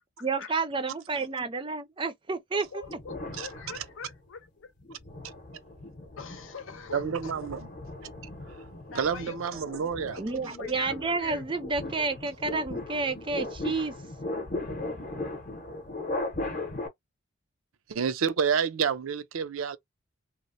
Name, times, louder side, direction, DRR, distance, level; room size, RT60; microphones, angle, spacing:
voice 1, 0.2-2.7 10.2-13.9, right 3 dB, 25° right, 0.5 m, -30 dB
voice 2, 2.5-4.7 6.2-7.5 8.9-9.4 9.7-11.4, left 5 dB, 80° left, 0.7 m, -44 dB
sound 1, 2.8-4.3 4.8-16.9, left 2 dB, 40° left, 0.7 m, -38 dB
voice 3, 6.9-7.6 8.9-10.2 17.9-19.8, right 6 dB, 85° right, 0.5 m, -29 dB
2.9 x 2.0 x 2.6 m
head